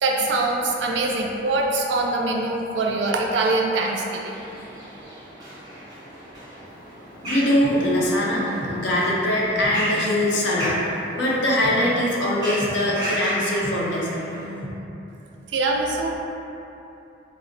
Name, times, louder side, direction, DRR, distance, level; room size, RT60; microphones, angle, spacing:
voice 1, 0.0-4.3 15.5-16.2, right 2 dB, 75° right, 0 dB, 0.3 m, -23 dB
sound 1, 4.3-14.5, equal, 20° right, 0.5 m, -35 dB
voice 2, 7.2-10.8 11.2-14.2, left 1 dB, 80° left, -4 dB, 0.5 m, -22 dB
sound 2, 7.6-8.7 9.6-10.7 11.6-12.7 13.6-14.7, equal, 30° left, 0.3 m, -37 dB
3.2 x 2.1 x 2.5 m, 3.0 s
head